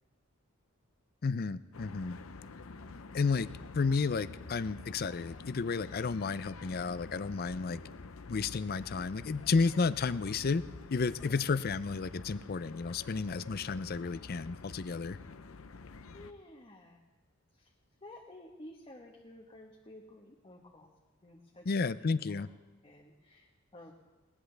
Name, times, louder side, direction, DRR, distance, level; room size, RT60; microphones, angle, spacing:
voice 1, 1.2-2.2 3.1-3.5 3.7-7.8 8.3-10.6 10.9-15.2 21.7-22.5, left 4 dB, 45° left, 16 dB, 0.5 m, -32 dB
sound 1, 1.7-16.3, left 3 dB, 75° left, 0.7 m, -48 dB
voice 2, 7.6-8.0 10.1-10.3 11.2-11.4 16.1-17.0 17.5-17.7 18.0-20.9 21.2-22.4 22.8-23.9, left 1 dB, 25° left, -1 dB, 1.2 m, -53 dB
20.5 x 18.5 x 3.4 m, 1.2 s
head